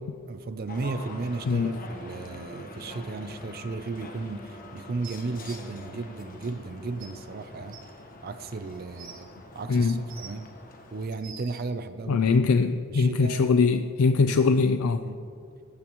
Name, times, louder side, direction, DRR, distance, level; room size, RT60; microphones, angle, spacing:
voice 1, 0.3-7.9 8.2-9.3 9.5-10.5 10.9-12.3 12.9-13.5 14.2-14.4 15.0-15.3, right 3 dB, 45° right, 0.5 m, -35 dB
sound 1, 0.7-11.1, left 1 dB, 40° left, 1.2 m, -44 dB
voice 2, 1.5-1.8 9.7-10.0 12.1-15.0, left 4 dB, 80° left, 0.4 m, -22 dB
sound 2, 5.0-5.6 6.6-6.7 7.0-7.1 7.7-7.8 8.6-9.2 9.9-10.5 11.0-11.6 12.6-12.7, right 7 dB, 60° right, 1.6 m, -46 dB
16.0 x 12.5 x 3.0 m
head